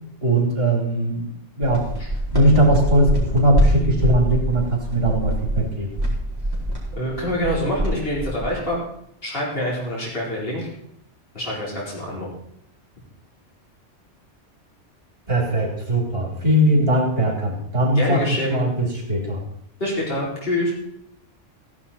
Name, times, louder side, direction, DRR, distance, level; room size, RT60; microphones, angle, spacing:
voice 1, 0.2-1.9 2.3-5.9 15.3-19.4, right 1 dB, 50° right, 0 dB, 3.5 m, -20 dB
sound 1, 1.6-8.7, right 1 dB, 20° right, 4.2 m, -24 dB
voice 2, 7.0-8.8 9.2-10.7 11.3-12.3 18.0-18.6 19.8-20.7, left 1 dB, 50° left, -5 dB, 4.3 m, -25 dB
15.5 x 10.5 x 4.3 m, 0.72 s
omnidirectional pair, 1.3 m